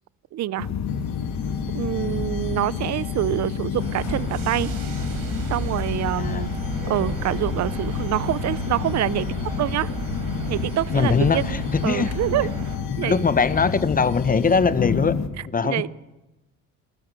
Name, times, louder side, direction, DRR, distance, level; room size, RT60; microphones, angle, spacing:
voice 1, 0.3-0.7 1.7-4.7 5.5-6.5 6.9-9.3 9.6-9.9 10.5-11.5 11.8-12.5 13.0-13.2 15.6-15.9, right 13 dB, 55° right, 20 dB, 0.6 m, -26 dB
sound 1, 0.6-15.3, left 7 dB, 55° left, 2.1 m, -29 dB
sound 2, 0.9-14.6, left 7 dB, 90° left, 2.8 m, -42 dB
sound 3, 3.8-12.8, right 4 dB, 90° right, 4.2 m, -33 dB
voice 2, 10.9-12.1 12.9-15.1 15.5-15.9, left 5 dB, 25° left, 13 dB, 1.2 m, -21 dB
28.5 x 13.5 x 6.9 m, 1.0 s
cardioid pair, 110°, 33 cm